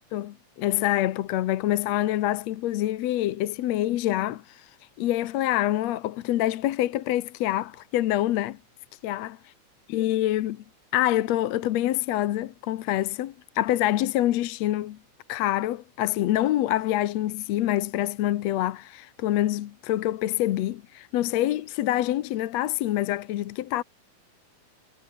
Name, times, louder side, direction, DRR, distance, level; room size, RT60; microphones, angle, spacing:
voice 1, 0.1-4.6 5.0-8.6 9.0-9.4 9.9-10.6 10.9-15.0 15.3-23.8, left 14 dB, 70° left, 1.9 m, -26 dB
omnidirectional pair, 3.6 m